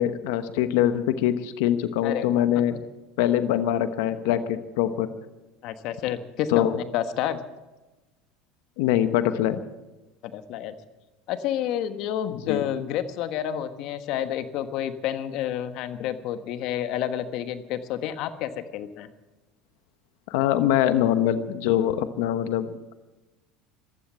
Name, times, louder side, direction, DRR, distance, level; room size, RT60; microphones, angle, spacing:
voice 1, 0.0-2.8 3.2-5.1 6.5-6.7 8.8-9.6 12.3-12.6 20.3-22.9, left 11 dB, 75° left, 11 dB, 1.1 m, -23 dB
voice 2, 2.0-2.4 5.6-7.4 10.2-10.7 11.3-19.1, left 10 dB, 55° left, 10 dB, 1.3 m, -29 dB
15.0 x 12.5 x 7.5 m, 1.1 s
supercardioid pair, 130°, 0 cm